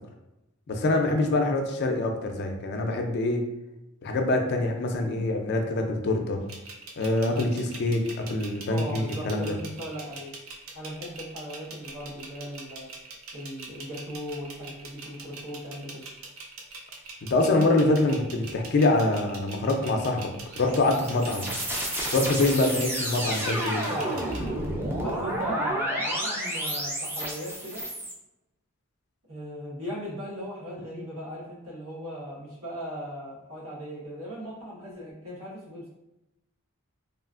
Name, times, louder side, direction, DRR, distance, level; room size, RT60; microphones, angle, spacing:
voice 1, 0.7-3.4 4.0-6.4 7.0-9.5 17.3-20.3 20.6-21.5 22.1-24.0, left 2 dB, 50° left, 4 dB, 0.4 m, -25 dB
sound 1, 6.5-24.5, right 4 dB, 65° right, 0.5 m, -43 dB
voice 2, 8.7-10.3 10.7-12.9 13.3-16.0 25.0-27.8 29.3-35.9, equal, 85° right, -6 dB, 1.2 m, -38 dB
sound 2, 20.5-28.1, right 1 dB, 10° right, 0.4 m, -31 dB
3.0 x 2.4 x 2.4 m, 0.94 s
head